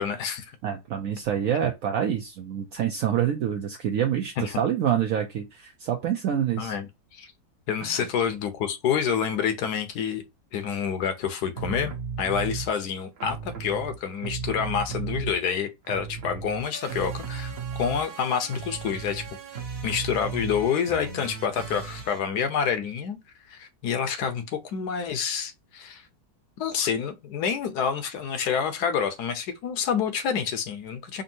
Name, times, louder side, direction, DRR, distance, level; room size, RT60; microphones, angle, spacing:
voice 1, 0.0-0.6 4.4-4.5 6.6-7.3 7.7-10.2 10.5-19.3 19.5-23.2 23.5-26.1 26.6-31.2, left 7 dB, 65° left, 1.1 m, -28 dB
voice 2, 0.6-6.8 7.8-8.1, right 9 dB, 70° right, 0.8 m, -27 dB
sound 1, 11.6-12.7 13.2-15.6 15.8-22.2, right 5 dB, 45° right, 0.9 m, -35 dB
5.3 x 2.6 x 2.7 m
omnidirectional pair, 2.0 m